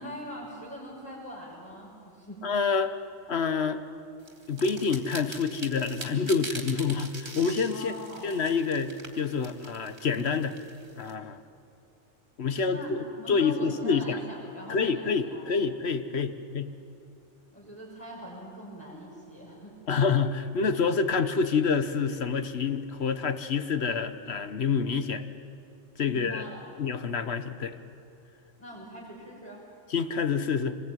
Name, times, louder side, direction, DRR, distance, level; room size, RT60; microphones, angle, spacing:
voice 1, 0.0-2.5 7.7-8.4 12.7-15.4 17.5-19.8 26.1-26.6 28.6-29.6, equal, 10° left, -8 dB, 5.8 m, -42 dB
voice 2, 2.4-2.9 3.3-3.8 4.5-7.9 8.2-10.6 10.9-11.4 12.4-14.2 14.7-16.7 19.9-25.3 26.0-26.4 26.8-27.8 29.9-30.8, left 5 dB, 60° left, 10 dB, 1.4 m, -27 dB
sound 1, 4.3-11.1, right 2 dB, 60° right, 3.0 m, -43 dB
26.0 x 21.0 x 9.2 m, 2.6 s
omnidirectional pair, 1.3 m